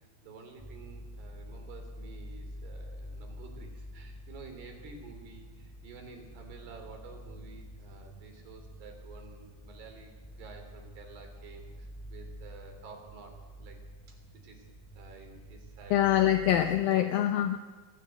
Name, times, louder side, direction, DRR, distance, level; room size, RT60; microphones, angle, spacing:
voice 1, 0.2-10.1 10.4-13.8 14.3-14.7 15.0-16.4 16.9-17.2, right 4 dB, 75° right, 3 dB, 5.4 m, -50 dB
sound 1, 0.6-16.9, equal, 5° left, 1.7 m, -47 dB
voice 2, 15.9-17.6, left 12 dB, 75° left, 7 dB, 2.4 m, -24 dB
26.5 x 14.5 x 7.9 m, 1.4 s
omnidirectional pair, 4.7 m